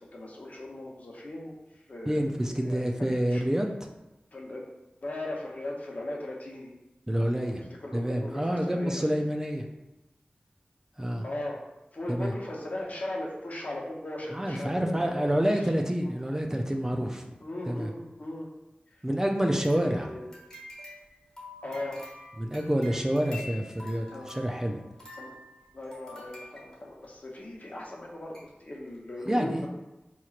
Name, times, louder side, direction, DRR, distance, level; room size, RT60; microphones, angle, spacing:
voice 1, 0.1-1.5 1.9-2.2 2.5-3.4 4.3-4.7 5.0-6.7 7.8-9.0 11.2-11.6 11.9-15.3 15.5-15.6 16.0-16.1 17.4-18.5 19.7-20.3 21.6-22.0 24.1-24.3 25.2-25.3 25.7-29.7, left 1 dB, 55° left, -2 dB, 0.8 m, -38 dB
voice 2, 2.1-3.7 7.1-9.6 11.0-11.2 12.1-12.3 14.3-17.3 17.7-17.9 19.0-20.1 22.4-24.9 29.3-29.7, equal, 15° right, 2 dB, 0.3 m, -28 dB
sound 1, 19.4-27.2 27.8-27.9 28.3-28.5 28.9-29.0, left 2 dB, 20° left, 1.2 m, -47 dB
4.3 x 2.9 x 2.4 m, 1.0 s
wide cardioid pair, 70°, 3 cm